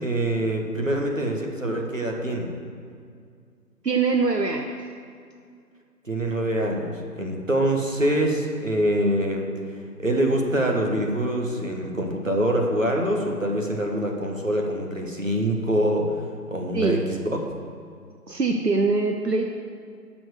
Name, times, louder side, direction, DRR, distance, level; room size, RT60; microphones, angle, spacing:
voice 1, 0.0-2.5 6.1-9.5 10.0-17.4, right 1 dB, 50° right, 1 dB, 1.6 m, -25 dB
voice 2, 3.8-4.8 16.7-17.0 18.3-19.4, right 4 dB, 75° right, 3 dB, 1.0 m, -23 dB
11.5 x 6.2 x 6.6 m, 2.2 s
figure-of-eight pair, 180°, 50 cm